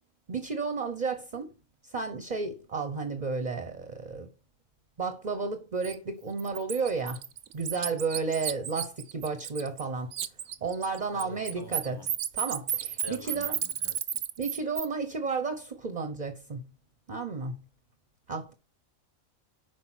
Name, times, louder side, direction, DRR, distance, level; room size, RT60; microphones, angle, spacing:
voice 1, 0.3-1.5 1.8-4.3 5.0-7.2 7.5-10.1 10.6-12.0 12.4-13.6 14.4-16.7 17.1-17.6 18.3-18.5, right 4 dB, 35° right, 1.0 m, -32 dB
Bird, 5.8-6.0 6.4-9.9 10.1-14.9, right 10 dB, 65° right, 1.0 m, -33 dB
voice 2, 11.1-12.1 13.0-14.0, equal, 15° left, 1.5 m, -45 dB
8.1 x 5.1 x 6.1 m
omnidirectional pair, 1.4 m